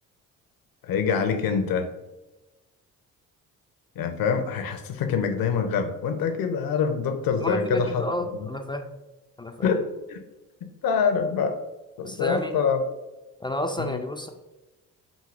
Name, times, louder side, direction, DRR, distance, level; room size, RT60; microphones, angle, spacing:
voice 1, 0.8-1.9 4.0-8.1 9.6-10.2 10.6-11.6 12.0-12.8 13.8-14.0, left 6 dB, 55° left, 6 dB, 0.8 m, -25 dB
voice 2, 7.4-8.9 9.4-9.7 12.0-12.5 13.4-14.3, left 1 dB, 10° left, 4 dB, 0.4 m, -30 dB
6.5 x 2.6 x 2.5 m, 1.1 s
hypercardioid pair, 50°, 41 cm